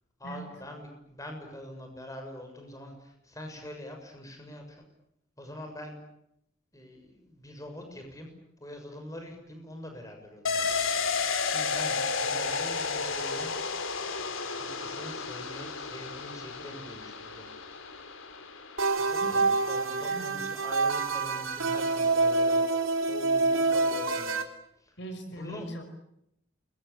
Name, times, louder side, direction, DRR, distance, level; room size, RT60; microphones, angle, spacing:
voice 1, 0.2-4.8 5.4-6.0 6.7-8.3 8.6-10.6 11.4-13.5 14.7-17.5 19.0-22.6 23.1-24.5 24.8-25.0 25.3-25.7, left 1 dB, 15° left, 4 dB, 6.9 m, -44 dB
sound 1, 10.5-19.9 20.2-20.3, left 5 dB, 85° left, 3.6 m, -32 dB
sound 2, 18.8-24.4, right 3 dB, 85° right, 3.8 m, -26 dB
voice 2, 19.9-20.3 25.0-25.8, right 1 dB, 60° left, 7 dB, 5.2 m, -41 dB
29.0 x 23.5 x 8.7 m, 0.76 s
head